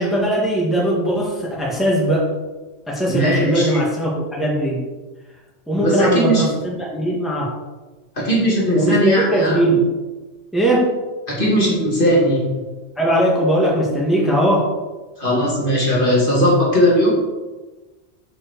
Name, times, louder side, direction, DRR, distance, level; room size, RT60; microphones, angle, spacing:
voice 1, 0.0-2.3 2.9-4.8 5.7-7.5 8.7-9.8 10.5-10.9 13.0-14.6, right 1 dB, ahead, -4 dB, 1.7 m, -19 dB
voice 2, 3.1-3.7 5.7-6.4 8.2-9.6 11.3-12.6 15.2-17.1, equal, 45° left, -4 dB, 2.5 m, -18 dB
7.4 x 4.8 x 6.6 m, 1.2 s
omnidirectional pair, 1.2 m